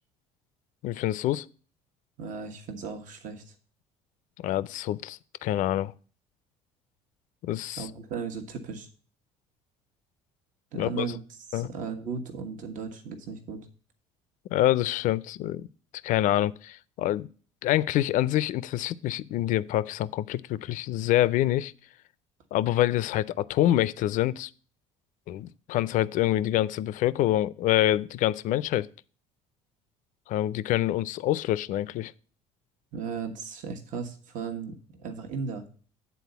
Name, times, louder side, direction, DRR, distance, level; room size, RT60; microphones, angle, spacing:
voice 1, 0.8-1.5 4.4-5.9 7.4-7.9 10.7-11.1 11.5-11.7 14.5-15.7 16.0-17.3 17.6-21.7 22.5-24.5 25.3-28.9 30.3-32.1, left 13 dB, 60° left, 0.4 m, -26 dB
voice 2, 2.2-3.5 7.8-8.9 10.7-13.6 32.9-35.6, right 5 dB, 60° right, 1.2 m, -36 dB
8.3 x 4.1 x 6.8 m
supercardioid pair, 80°, 15 cm